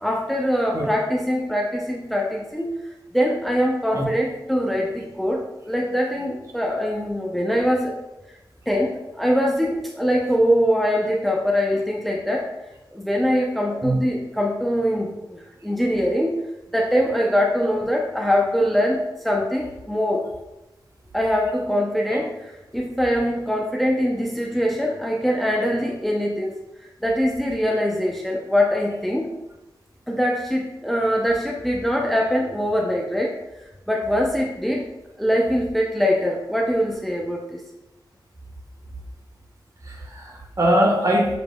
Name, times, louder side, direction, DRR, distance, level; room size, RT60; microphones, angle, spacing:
voice 1, 0.0-2.7 3.1-8.0 8.7-12.5 12.9-16.3 16.7-20.2 21.1-26.5 27.0-29.3 30.1-33.4 33.9-34.9 35.2-37.6, equal, ahead, -1 dB, 0.6 m, -23 dB
voice 2, 39.9-41.4, equal, 40° right, -1 dB, 1.3 m, -21 dB
6.8 x 3.2 x 2.3 m, 0.99 s
cardioid pair, 60°, 8 cm